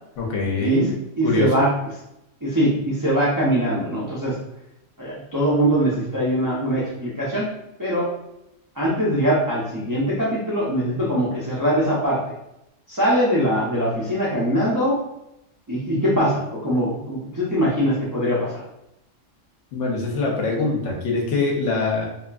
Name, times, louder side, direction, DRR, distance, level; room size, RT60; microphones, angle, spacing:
voice 1, 0.2-0.9 1.2-1.6 19.7-22.1, left 3 dB, 70° left, -1 dB, 0.9 m, -23 dB
voice 2, 1.2-1.7 2.4-4.4 5.0-7.5 7.8-8.1 8.8-12.2 12.9-15.0 15.7-18.5, equal, 35° right, -7 dB, 0.3 m, -22 dB
2.8 x 2.4 x 2.3 m, 0.85 s
omnidirectional pair, 1.3 m